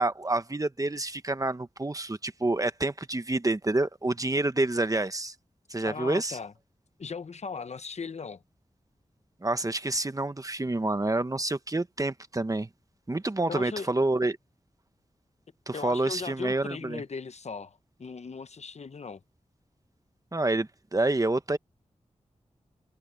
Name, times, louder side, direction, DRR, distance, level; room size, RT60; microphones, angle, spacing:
voice 1, 0.0-5.3 5.7-6.4 9.4-12.7 13.1-14.4 15.7-17.0 20.3-21.6, right 2 dB, 30° right, 1.1 m, -28 dB
voice 2, 5.8-6.5 7.0-8.4 13.5-13.9 15.7-19.2, left 5 dB, 60° left, 0.9 m, -38 dB
wide cardioid pair, 70°, 13 cm